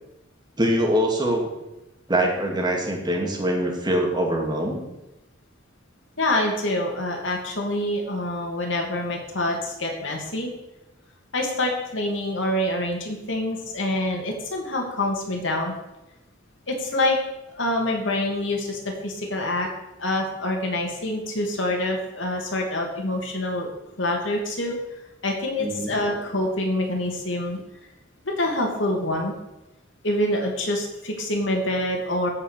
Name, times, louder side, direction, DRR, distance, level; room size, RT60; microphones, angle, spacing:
voice 1, 0.6-1.5 2.1-4.8 25.6-26.2, right 1 dB, 20° right, 0 dB, 2.4 m, -24 dB
voice 2, 6.2-10.5 11.3-15.7 16.7-17.2 17.5-19.7 20.0-23.7 24.0-24.8 25.2-27.6 28.4-29.3 30.0-32.3, left 1 dB, 75° left, 1 dB, 2.7 m, -26 dB
15.5 x 5.5 x 6.6 m, 0.95 s
head